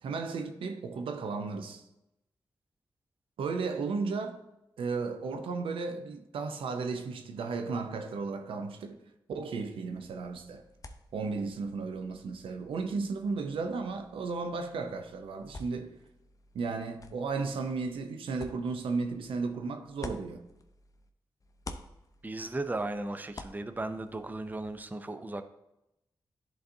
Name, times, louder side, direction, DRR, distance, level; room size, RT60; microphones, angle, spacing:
voice 1, 0.0-1.8 3.4-4.4 4.8-9.0 9.3-10.6 11.1-16.0 16.5-20.4, right 4 dB, 85° right, 0.6 m, -34 dB
sound 1, 9.9-21.1 21.4-24.8, left 2 dB, 40° left, 0.6 m, -51 dB
voice 2, 22.2-25.4, right 2 dB, 20° right, 0.5 m, -36 dB
10.5 x 3.9 x 2.7 m
cardioid pair, 50°, 9 cm